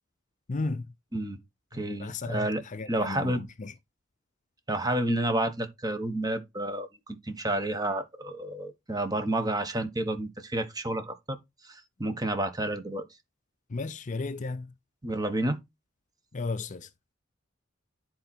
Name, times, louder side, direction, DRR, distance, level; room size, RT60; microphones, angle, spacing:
voice 1, 0.5-0.9 2.0-3.7 13.7-14.7 16.3-16.9, left 3 dB, 40° left, 0.5 m, -34 dB
voice 2, 1.7-3.4 4.7-11.4 11.6-13.0 15.0-15.6, right 1 dB, 20° right, 1.2 m, -30 dB
10.5 x 4.4 x 4.3 m
head